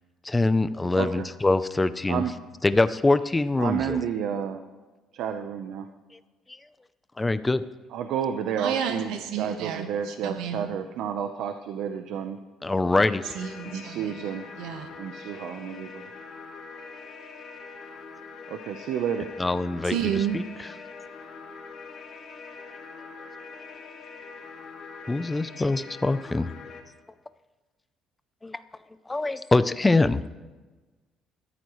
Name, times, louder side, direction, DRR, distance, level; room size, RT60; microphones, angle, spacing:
voice 1, 0.2-2.3 2.6-4.0 7.2-7.6 12.6-13.4 19.4-20.0 20.3-20.4 25.1-26.5 28.4-28.6 29.1-30.2, left 2 dB, 15° left, 13 dB, 0.5 m, -23 dB
voice 2, 0.9-1.3 2.1-2.3 3.6-4.6 5.1-5.9 7.9-12.4 13.6-14.5 15.0-16.0 18.5-19.3, right 8 dB, 70° right, 7 dB, 0.8 m, -31 dB
voice 3, 8.6-10.7 13.3-14.3 14.6-14.9 19.8-20.4, right 8 dB, 90° right, 5 dB, 1.3 m, -31 dB
sound 1, 13.1-26.8, left 4 dB, 50° left, 2.3 m, -43 dB
20.5 x 14.0 x 3.2 m, 1.3 s
cardioid pair, 140°, 0 cm